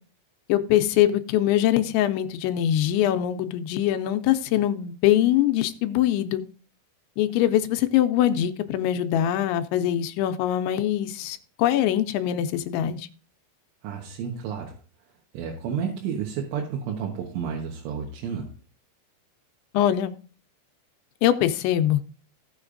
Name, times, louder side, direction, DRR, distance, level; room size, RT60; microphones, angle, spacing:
voice 1, 0.5-6.4 7.2-13.1 19.7-20.1 21.2-22.0, left 12 dB, 80° left, 9 dB, 3.0 m, -23 dB
voice 2, 13.8-18.5, right 7 dB, 90° right, 0 dB, 3.7 m, -31 dB
17.0 x 6.5 x 2.6 m, 0.39 s
omnidirectional pair, 5.3 m